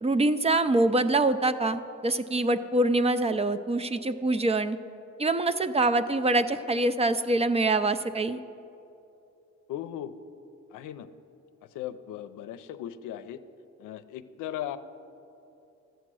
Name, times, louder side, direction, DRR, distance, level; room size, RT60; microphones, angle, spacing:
voice 1, 0.0-4.8 5.2-8.4, right 2 dB, 20° right, 11 dB, 0.4 m, -25 dB
voice 2, 9.7-10.1 10.7-11.1 11.7-13.4 13.8-14.8, left 11 dB, 90° left, 11 dB, 0.6 m, -37 dB
12.5 x 8.0 x 6.2 m, 2.9 s
cardioid pair, 90°, 30 cm